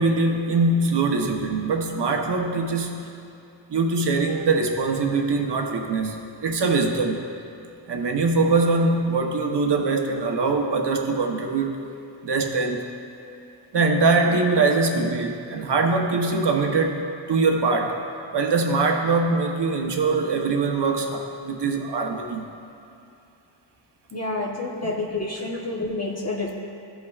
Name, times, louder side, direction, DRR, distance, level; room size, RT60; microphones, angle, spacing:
voice 1, 0.0-3.1 3.7-7.2 7.9-11.8 12.2-12.9 13.7-18.0 18.3-22.5, right 3 dB, 60° right, 3 dB, 1.0 m, -22 dB
voice 2, 24.1-26.5, left 2 dB, 35° left, -2 dB, 0.9 m, -28 dB
13.5 x 5.5 x 2.4 m, 2.7 s
cardioid pair, 65°, 47 cm